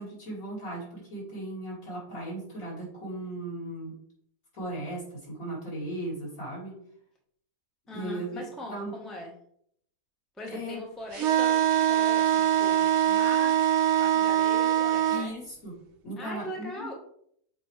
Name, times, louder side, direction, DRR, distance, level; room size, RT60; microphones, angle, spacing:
voice 1, 0.0-3.9 4.5-6.8 7.9-8.4 8.7-9.0 10.5-10.8 15.1-15.7 16.0-16.9, right 1 dB, 60° left, -5 dB, 3.2 m, -37 dB
voice 2, 7.9-9.3 10.4-11.6 11.8-13.6 14.0-15.3 16.2-16.9, left 1 dB, ahead, -1 dB, 0.9 m, -40 dB
sound 1, 11.1-15.3, right 11 dB, 60° right, 0.7 m, -23 dB
7.7 x 4.4 x 3.2 m, 0.67 s
omnidirectional pair, 1.7 m